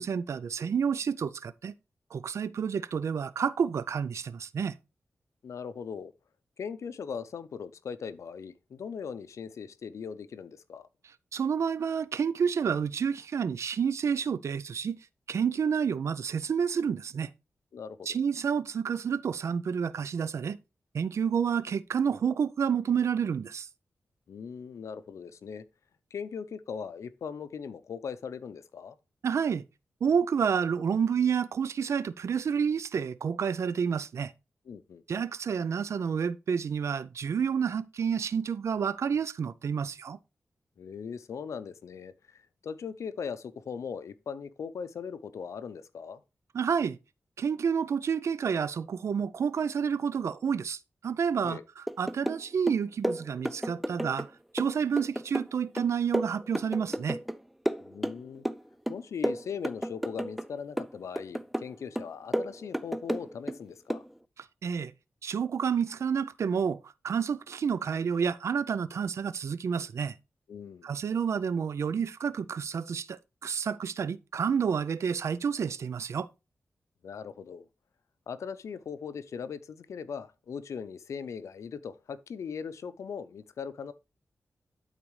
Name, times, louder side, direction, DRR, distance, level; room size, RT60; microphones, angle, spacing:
voice 1, 0.0-1.7 2.1-4.8 11.3-15.0 15.3-17.3 18.1-20.6 20.9-23.7 29.2-29.6 30.0-34.3 35.1-40.2 46.5-47.0 47.4-57.2 64.4-64.9 65.2-70.1 70.8-76.3, right 7 dB, 75° right, 0.4 m, -29 dB
voice 2, 5.4-6.1 6.6-10.9 17.7-18.1 24.3-25.6 26.1-29.0 34.7-35.0 40.8-46.2 51.4-51.6 57.8-58.5 58.9-64.0 70.5-70.9 77.0-77.6 78.3-83.9, left 6 dB, 85° left, 0.6 m, -39 dB
sound 1, 51.9-52.4 52.7-54.3 54.6-57.4 57.7-58.6 58.9-60.5 60.8-61.7 62.0-63.6 63.9-64.1, equal, ahead, 0.3 m, -32 dB
12.0 x 4.1 x 3.2 m
wide cardioid pair, 105°, 5 cm